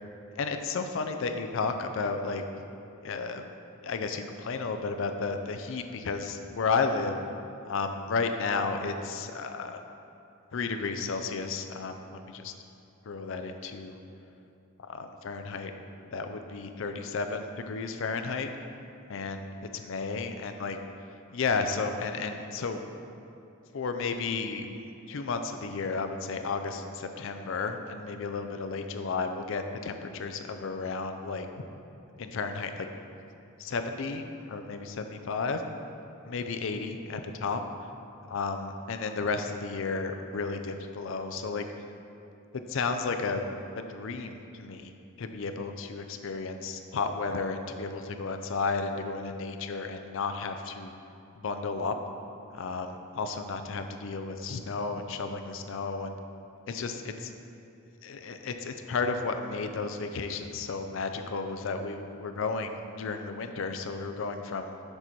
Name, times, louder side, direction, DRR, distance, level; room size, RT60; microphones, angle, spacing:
voice 1, 0.4-2.4 3.0-3.4 3.8-7.2 7.7-9.8 10.5-12.5 13.1-14.0 14.8-15.7 16.1-18.5 19.1-19.5 19.7-20.8 21.3-22.8 23.7-24.7 25.1-31.5 32.2-32.9 33.6-35.6 36.3-37.6 38.3-41.7 42.7-43.4 43.7-44.9 45.2-50.9 51.4-51.9 52.5-56.1 56.7-57.3 58.0-64.7, left 4 dB, 60° left, 7 dB, 0.4 m, -33 dB
6.7 x 4.2 x 4.5 m, 2.7 s
head